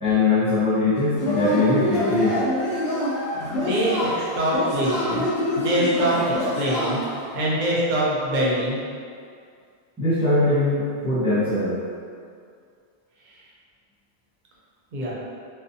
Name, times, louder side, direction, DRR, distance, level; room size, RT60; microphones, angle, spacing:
voice 1, 0.0-2.4 10.0-11.7, left 2 dB, 5° right, -13 dB, 0.7 m, -21 dB
Yell / Cheering, 1.2-7.3, left 1 dB, 80° left, 1.0 m, -26 dB
voice 2, 3.3-5.3 5.6-7.0 7.3-8.8 13.3-13.4 14.9-15.1, right 1 dB, 55° right, -5 dB, 0.6 m, -24 dB
2.6 x 2.1 x 2.6 m, 2.2 s
omnidirectional pair, 1.1 m